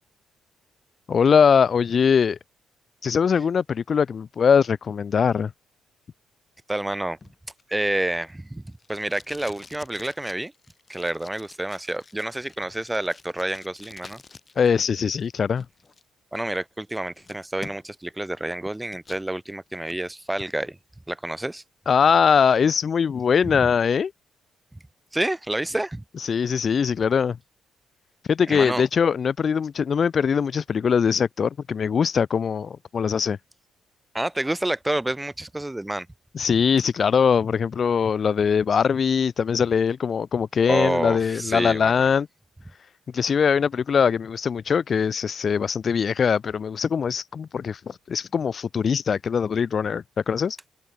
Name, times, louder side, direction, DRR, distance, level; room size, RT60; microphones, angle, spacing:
voice 1, 1.1-2.4 3.0-5.5 14.6-15.6 21.9-24.1 26.2-27.4 28.3-33.4 36.3-42.3 43.1-50.6, left 6 dB, 45° left, 0.4 m, -22 dB
voice 2, 6.7-7.2 7.7-10.5 10.9-14.2 16.3-20.8 21.1-21.6 23.4-23.7 24.7-24.8 25.1-26.0 28.5-28.8 34.1-36.1 40.7-42.1, right 1 dB, 10° right, 1.7 m, -28 dB
Packing tape duct tape, 7.2-14.7 15.0-16.0 16.5-16.6 16.9-18.1 18.4-19.3 19.7-20.0, left 4 dB, 30° left, 1.6 m, -48 dB
cardioid pair, 90°, 0 cm